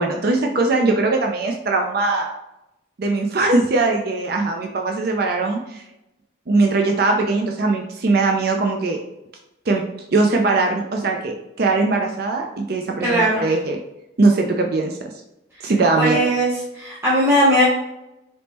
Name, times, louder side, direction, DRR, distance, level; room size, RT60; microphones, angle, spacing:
voice 1, 0.0-2.3 3.0-5.8 6.5-9.0 9.7-13.8 14.2-15.1 15.6-16.2, right 3 dB, 50° right, 2 dB, 0.4 m, -20 dB
voice 2, 13.0-13.5 16.0-17.6, equal, 15° right, -8 dB, 0.8 m, -18 dB
4.0 x 3.5 x 2.9 m, 0.90 s
head